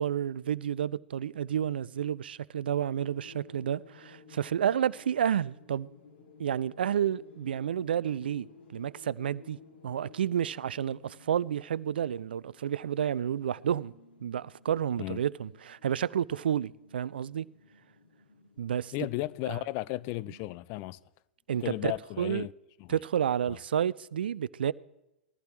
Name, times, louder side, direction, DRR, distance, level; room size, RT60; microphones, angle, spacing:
voice 1, 0.0-5.9 6.4-8.5 8.7-9.6 9.8-13.9 14.2-17.5 18.6-18.9 19.5-19.6 21.5-22.5 22.9-24.7, right 9 dB, 65° right, 0.4 m, -30 dB
sound 1, 3.0-19.6, left 4 dB, 70° left, 4.7 m, -56 dB
voice 2, 18.9-21.0 21.6-22.5 22.8-22.9 23.5-23.6, left 18 dB, 40° left, 0.4 m, -34 dB
20.0 x 14.5 x 3.1 m
figure-of-eight pair, 100°, 6 cm